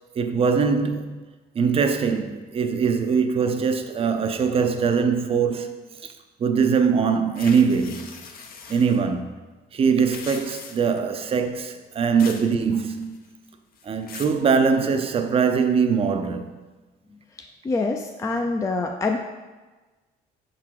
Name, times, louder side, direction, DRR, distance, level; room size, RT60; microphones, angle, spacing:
voice 1, 0.2-1.2 1.5-6.1 6.4-8.1 8.7-9.3 9.7-13.2 13.8-16.5, right 6 dB, 35° right, 0.5 m, -22 dB
sound 1, 7.4-9.0 9.9-11.0 12.2-12.5 12.8-13.3 13.8-14.4, left 5 dB, 60° left, 0.7 m, -40 dB
voice 2, 17.6-19.2, left 3 dB, 20° left, 0.4 m, -25 dB
5.7 x 3.8 x 4.6 m
cardioid pair, 110°, 17 cm